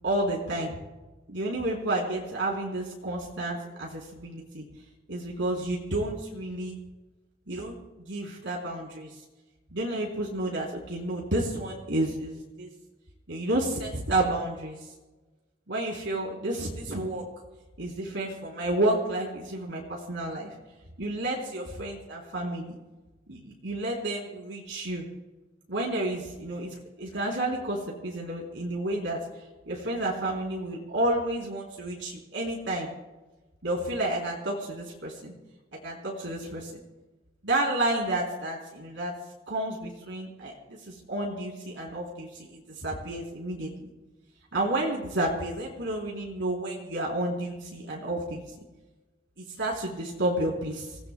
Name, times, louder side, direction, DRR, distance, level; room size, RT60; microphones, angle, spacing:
voice 1, 0.0-0.8 1.3-4.7 5.1-6.8 7.5-9.1 9.7-12.7 13.3-14.8 15.7-17.3 17.8-20.5 21.0-22.8 23.3-25.1 25.7-29.2 29.7-32.9 33.6-35.3 35.7-36.7 37.4-39.2 39.5-43.9 44.5-48.4 49.4-51.0, right 1 dB, 75° right, -3 dB, 3.6 m, -31 dB
27.5 x 18.0 x 2.2 m, 1.1 s
head